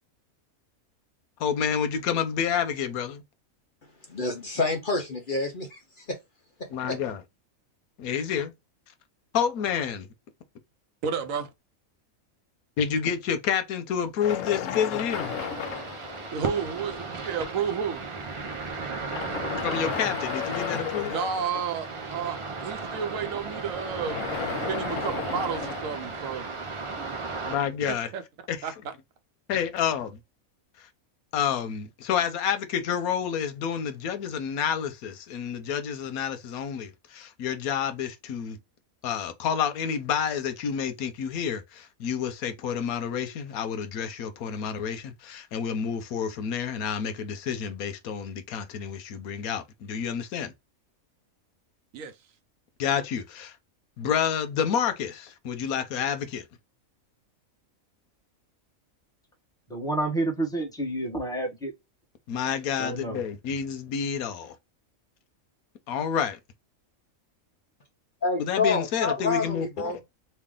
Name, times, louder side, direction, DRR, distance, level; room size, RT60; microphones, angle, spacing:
voice 1, 1.4-3.2 6.7-7.2 8.0-8.5 9.3-10.1 12.8-15.3 19.6-21.1 27.5-28.1 28.5-28.6 29.5-30.2 31.3-38.6 39.0-50.5 52.8-53.5 54.0-56.4 62.3-64.5 65.9-66.4 68.5-70.0, left 8 dB, 90° left, 1.2 m, -29 dB
voice 2, 4.1-5.7 6.9-7.0 68.2-70.0, left 3 dB, 45° left, 0.8 m, -27 dB
voice 3, 11.0-11.5 16.3-18.0 21.1-22.4 22.6-24.2 24.7-26.5 27.0-27.1 27.9-28.2 28.6-28.9 51.9-52.1, right 7 dB, 70° right, 1.0 m, -31 dB
sound 1, 14.2-16.9 17.7-17.8 18.9-22.0 23.8-26.9, left 9 dB, 70° left, 1.0 m, -34 dB
sound 2, 15.1-27.6, right 4 dB, 45° right, 0.4 m, -35 dB
voice 4, 59.7-61.7 62.8-63.2, right 2 dB, 5° left, 1.0 m, -29 dB
3.2 x 2.4 x 3.6 m
omnidirectional pair, 1.5 m